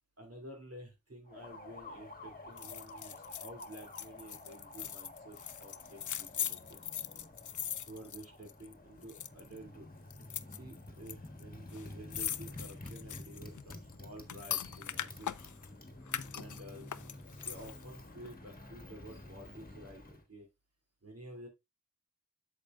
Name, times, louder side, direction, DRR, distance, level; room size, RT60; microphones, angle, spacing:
voice 1, 0.2-6.8 7.9-9.9 10.5-15.5 16.3-16.9 17.4-20.5 21.0-21.5, right 1 dB, 55° right, 2 dB, 2.9 m, -51 dB
Motorcycle, 1.3-20.2, left 2 dB, 30° left, 1.5 m, -50 dB
sound 1, 2.6-8.7 9.0-9.6 10.1-11.1 11.4-11.5 11.7-15.7 16.1-17.8 18.2-18.3, left 9 dB, 85° left, 0.5 m, -41 dB
8.6 x 6.8 x 2.5 m, 0.20 s
wide cardioid pair, 50°, 29 cm